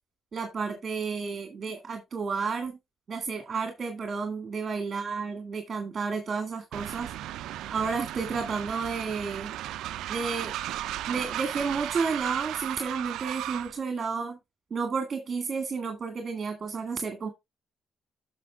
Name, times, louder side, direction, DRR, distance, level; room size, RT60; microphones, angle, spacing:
voice 1, 0.3-2.8 3.1-7.1 7.7-9.5 10.1-10.5 11.1-14.4 14.7-17.3, right 5 dB, 40° right, 1.9 m, -31 dB
Train, 6.7-13.8, right 13 dB, 85° right, 0.4 m, -35 dB
8.2 x 6.3 x 3.5 m
cardioid pair, 90°, 0 cm